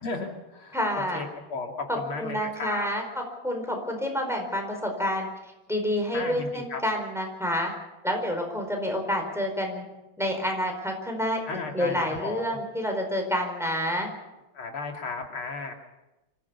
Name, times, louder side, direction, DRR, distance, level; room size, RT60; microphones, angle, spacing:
voice 1, 0.0-0.8 1.1-2.9 6.1-6.8 11.5-12.4 14.5-15.7, left 3 dB, 85° left, 2 dB, 3.4 m, -34 dB
voice 2, 0.7-1.3 1.9-5.3 5.7-7.7 8.0-9.8 10.2-11.4 11.7-14.1, equal, ahead, 2 dB, 4.5 m, -28 dB
26.0 x 15.5 x 7.1 m, 0.98 s
omnidirectional pair, 2.3 m